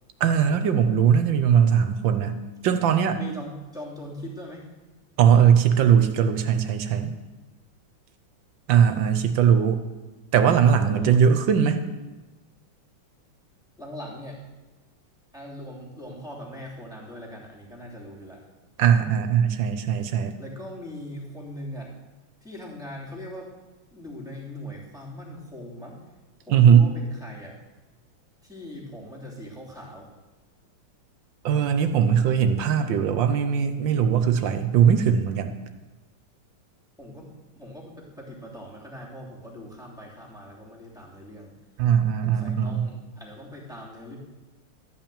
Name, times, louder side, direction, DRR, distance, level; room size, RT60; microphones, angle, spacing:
voice 1, 0.2-2.4 2.6-3.2 5.2-7.1 8.7-9.8 10.3-11.8 18.8-20.3 26.5-26.9 31.4-35.5 41.8-42.9, right 8 dB, 70° right, 9 dB, 1.4 m, -20 dB
voice 2, 3.1-4.7 10.8-11.2 13.8-14.4 15.3-18.4 20.4-21.9 22.4-23.5 23.9-26.0 26.4-27.6 28.4-30.1 37.0-41.5 42.2-44.2, equal, ahead, -4 dB, 2.8 m, -40 dB
13.0 x 5.7 x 8.9 m, 1.2 s
omnidirectional pair, 2.3 m